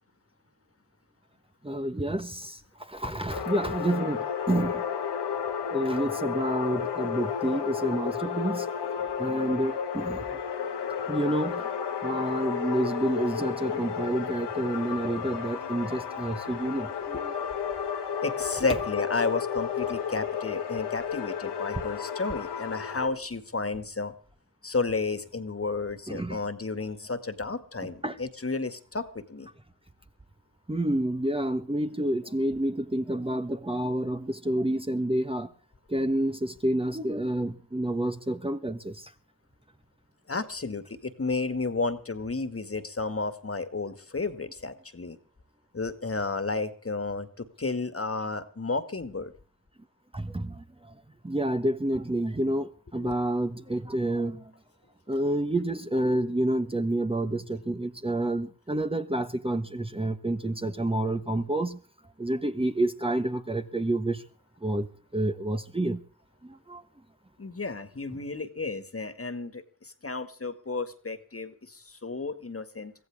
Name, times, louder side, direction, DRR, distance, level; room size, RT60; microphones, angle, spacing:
voice 1, 1.6-4.8 5.7-8.7 9.2-10.2 11.1-11.7 12.0-17.3 26.1-26.4 28.0-28.2 30.7-35.5 35.9-39.1 50.1-50.9 51.2-54.4 55.1-61.8 62.2-64.2 64.6-64.9 65.1-66.0 66.4-66.8, right 1 dB, 15° right, 1.2 m, -29 dB
sound 1, 3.3-23.1, left 7 dB, 90° left, 1.7 m, -32 dB
voice 2, 18.2-24.1 24.6-29.5 40.3-45.2 45.7-49.3 53.0-53.2 67.4-72.9, left 3 dB, 35° left, 2.0 m, -32 dB
23.0 x 15.0 x 3.6 m
cardioid pair, 50°, 39 cm